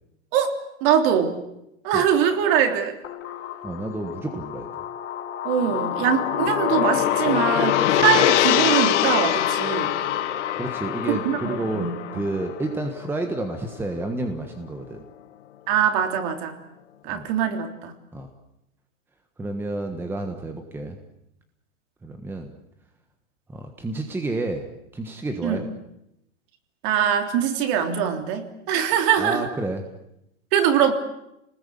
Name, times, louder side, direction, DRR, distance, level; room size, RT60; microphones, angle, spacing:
voice 1, 0.8-1.4 1.8-2.9 5.4-9.9 11.1-12.2 15.7-16.6 17.0-17.9 25.4-25.6 26.8-29.5 30.5-30.9, right 8 dB, 40° right, 6 dB, 3.4 m, -22 dB
sound 1, 3.0-12.5, left 11 dB, 30° left, 4.4 m, -29 dB
voice 2, 3.6-4.7 10.5-15.0 17.1-17.3 18.1-18.3 19.4-21.0 22.0-22.5 23.5-24.7 24.9-25.6 29.2-29.9, right 2 dB, 5° right, 5 dB, 1.3 m, -30 dB
Gong, 5.7-14.0, left 12 dB, 60° left, 1.8 m, -25 dB
28.0 x 20.0 x 8.5 m, 0.84 s
supercardioid pair, 155°, 39 cm